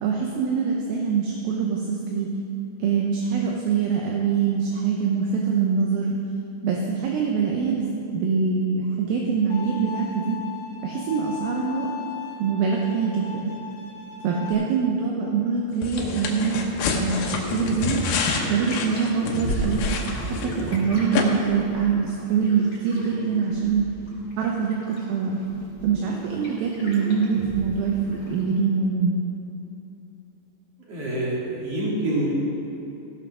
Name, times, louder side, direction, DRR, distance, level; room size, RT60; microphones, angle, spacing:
voice 1, 0.0-2.3 2.8-6.1 6.6-7.8 8.1-10.4 10.8-11.9 12.4-13.4 14.2-18.0 18.5-19.8 20.4-23.9 24.4-25.4 25.8-29.2, right 6 dB, 75° right, -1 dB, 2.4 m, -24 dB
Bowed string instrument, 9.5-14.5, left 8 dB, 60° left, 3.0 m, -38 dB
sound 1, 15.8-20.8 21.1-21.2, left 5 dB, 75° left, 2.9 m, -28 dB
sound 2, 16.2-28.4, equal, 40° left, 4.2 m, -35 dB
voice 2, 30.8-32.3, right 1 dB, 40° right, -6 dB, 3.4 m, -26 dB
16.5 x 5.8 x 6.2 m, 3.0 s
omnidirectional pair, 4.8 m